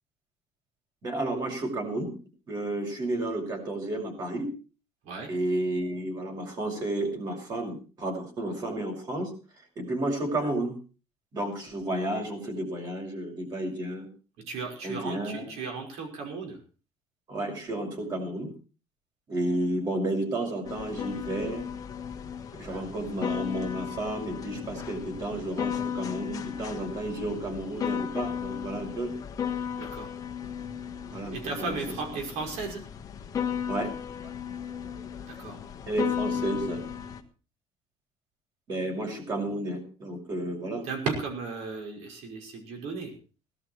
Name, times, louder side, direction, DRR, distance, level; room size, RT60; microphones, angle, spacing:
voice 1, 1.0-2.1 2.5-4.5 5.3-9.3 9.8-10.7 11.3-14.1 14.8-15.5 17.3-18.5 19.3-21.7 22.5-29.1 31.1-31.8 33.7-33.9 35.9-36.8 38.7-40.8, right 1 dB, 35° right, 1 dB, 6.1 m, -32 dB
voice 2, 14.5-16.6 29.8-30.1 31.3-32.8 35.3-35.6 40.8-43.1, right 4 dB, 85° right, 2 dB, 5.7 m, -35 dB
sound 1, 20.6-37.2, left 8 dB, 30° left, 1.6 m, -35 dB
18.0 x 12.0 x 4.6 m, 0.37 s
cardioid pair, 150°, 11 cm